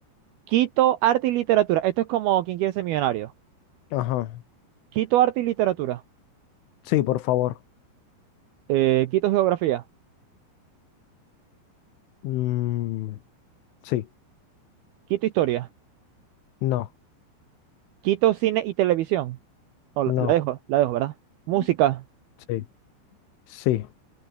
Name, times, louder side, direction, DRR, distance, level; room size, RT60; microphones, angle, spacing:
voice 1, 0.5-3.3 4.9-6.0 8.7-9.8 15.1-15.7 18.0-19.4 20.0-21.1 21.5-22.0, right 14 dB, 80° right, 2.3 m, -22 dB
voice 2, 3.9-4.3 6.9-7.6 12.2-13.2 13.8-14.1 16.6-16.9 20.1-20.3 22.5-22.6 23.5-23.9, left 15 dB, 80° left, 3.9 m, -25 dB
omnidirectional pair, 5.5 m